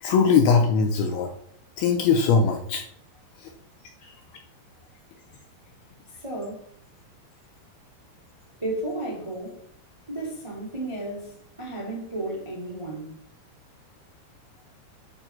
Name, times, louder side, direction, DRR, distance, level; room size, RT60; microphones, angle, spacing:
voice 1, 0.0-1.3 1.8-2.8, left 5 dB, 80° left, 2.4 m, -20 dB
voice 2, 6.1-6.7 8.6-9.6 10.1-13.1, right 2 dB, 10° right, 1.5 m, -33 dB
9.1 x 4.3 x 5.8 m
omnidirectional pair, 5.1 m